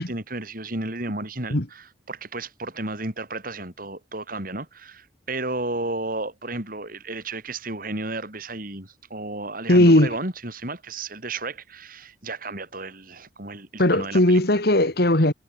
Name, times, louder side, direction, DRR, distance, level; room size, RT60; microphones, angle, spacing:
voice 1, 0.0-14.4, right 2 dB, 50° right, 7.1 m, -33 dB
voice 2, 9.7-10.1 13.8-15.3, left 1 dB, 60° left, 2.6 m, -17 dB
head